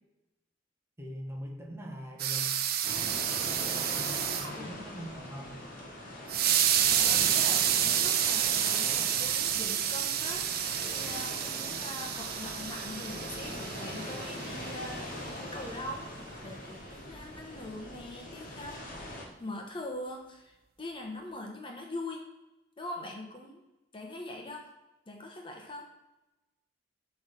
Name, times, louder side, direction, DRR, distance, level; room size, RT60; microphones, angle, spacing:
voice 1, 1.0-2.6 3.9-5.7, equal, 15° right, 0 dB, 1.2 m, -42 dB
sound 1, 2.2-4.5 6.3-14.6, right 10 dB, 55° right, 0.6 m, -29 dB
sound 2, 2.8-19.3, left 1 dB, 50° left, 1.5 m, -41 dB
voice 2, 4.0-4.9 6.9-16.1 16.4-22.2 22.8-23.6 23.9-24.7 25.1-25.9, left 1 dB, 30° left, 1 dB, 1.0 m, -42 dB
7.8 x 3.4 x 5.7 m, 1.0 s
head